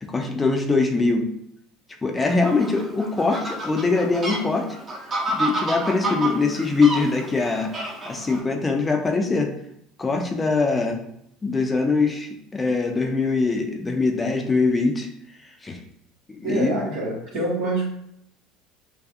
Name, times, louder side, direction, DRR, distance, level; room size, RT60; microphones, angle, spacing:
voice 1, 0.0-1.3 2.0-4.7 5.3-9.5 10.0-11.1 11.4-15.1 15.6-15.8 16.3-16.8, left 3 dB, 20° left, 4 dB, 0.5 m, -22 dB
Fowl, 2.2-8.4, right 2 dB, 35° right, 0.8 m, -30 dB
voice 2, 16.4-17.8, right 2 dB, 65° right, -7 dB, 0.7 m, -26 dB
2.4 x 2.3 x 2.6 m, 0.73 s
figure-of-eight pair, 65°, 0 cm